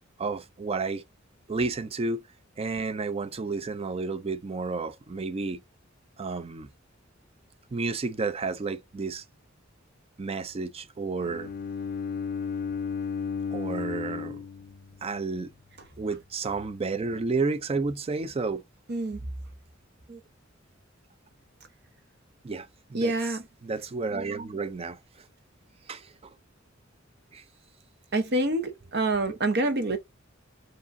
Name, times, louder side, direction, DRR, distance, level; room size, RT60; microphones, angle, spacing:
voice 1, 0.2-1.0 1.5-2.2 2.6-5.6 6.2-6.7 7.7-9.2 10.2-11.5 13.5-14.4 15.0-15.5 16.0-18.6 20.1-20.2 22.4-23.1 23.6-25.0 25.9-26.1 27.3-27.4 29.1-29.4 29.9-30.0, right 4 dB, 30° right, 0.4 m, -31 dB
Bowed string instrument, 11.2-15.3, left 6 dB, 50° left, 0.3 m, -34 dB
voice 2, 18.9-19.2 22.9-23.4 28.1-30.0, right 2 dB, 55° right, 0.9 m, -26 dB
4.8 x 3.0 x 2.6 m
head